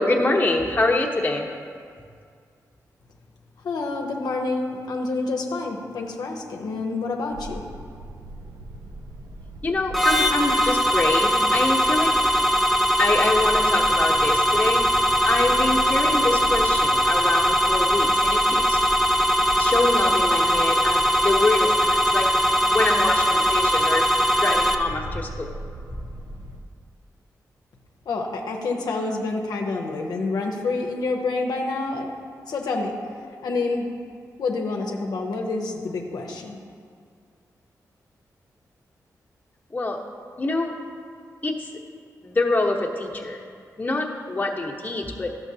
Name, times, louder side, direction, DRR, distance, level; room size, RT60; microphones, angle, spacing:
voice 1, 0.0-1.5 9.6-12.2 13.0-14.8 15.2-18.8 19.5-22.3 22.7-24.1 24.4-25.6 39.7-40.0 40.4-40.8 41.4-41.7 42.2-43.4 43.8-45.4, left 2 dB, 25° left, -1 dB, 1.0 m, -25 dB
voice 2, 3.6-7.6 28.1-32.1 32.5-32.9 33.4-33.9 34.4-36.6, left 3 dB, 80° left, 1 dB, 0.7 m, -28 dB
sound 1, 7.3-26.6, right 1 dB, 85° right, 0.6 m, -39 dB
sound 2, 9.9-24.7, equal, ahead, 0.7 m, -20 dB
11.5 x 6.9 x 2.7 m, 2.2 s
cardioid pair, 70°, 7 cm